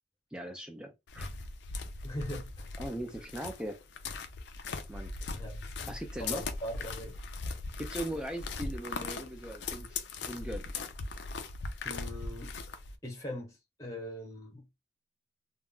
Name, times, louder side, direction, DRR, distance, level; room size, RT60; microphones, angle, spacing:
voice 1, 0.3-1.3 2.8-3.8 4.9-5.1 5.9-6.4 7.8-10.7, right 1 dB, 5° right, 0.3 m, -39 dB
sound 1, 1.1-13.0, left 3 dB, 65° left, 0.4 m, -39 dB
voice 2, 2.0-2.8 5.4-7.2 11.8-12.5 13.0-14.7, equal, 15° left, 0.7 m, -41 dB
2.2 x 2.1 x 3.6 m
head